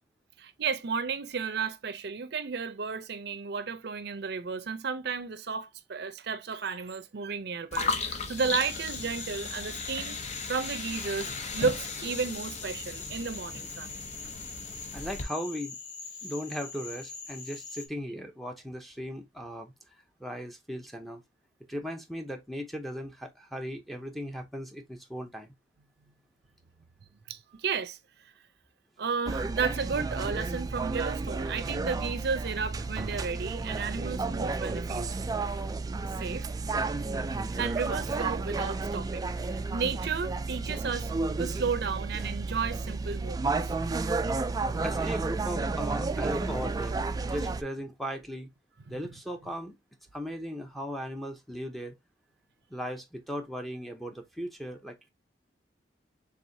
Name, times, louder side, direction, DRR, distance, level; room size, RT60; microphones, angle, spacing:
voice 1, 0.4-10.2 10.5-13.9 27.3-28.0 29.0-35.1 36.2-36.5 37.6-41.1 41.4-43.7 48.9-49.0, right 5 dB, 65° right, 0.6 m, -33 dB
sound 1, 7.7-15.2, left 4 dB, 40° left, 0.7 m, -36 dB
Cricket / Frog, 8.4-17.9, left 4 dB, 90° left, 1.3 m, -43 dB
voice 2, 14.9-15.8 16.2-19.7 20.2-21.2 21.7-25.5 44.8-47.0 47.3-48.5 48.9-49.8 50.1-51.9 52.7-55.1, equal, ahead, 0.7 m, -37 dB
sound 2, 29.3-47.6, right 3 dB, 20° right, 0.3 m, -32 dB
4.7 x 3.6 x 2.6 m
head